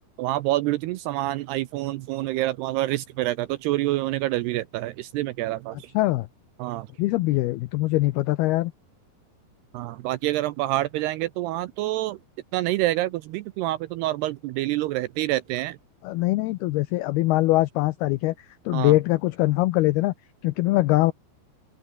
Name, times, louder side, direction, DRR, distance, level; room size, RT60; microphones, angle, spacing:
voice 1, 0.2-5.9 6.6-6.9 9.7-12.2 12.5-15.8 18.7-19.0, right 16 dB, 80° right, 2.4 m, -27 dB
voice 2, 5.9-6.3 7.0-8.7 16.0-20.1 20.4-21.1, left 18 dB, 85° left, 2.2 m, -22 dB
omnidirectional pair, 5.3 m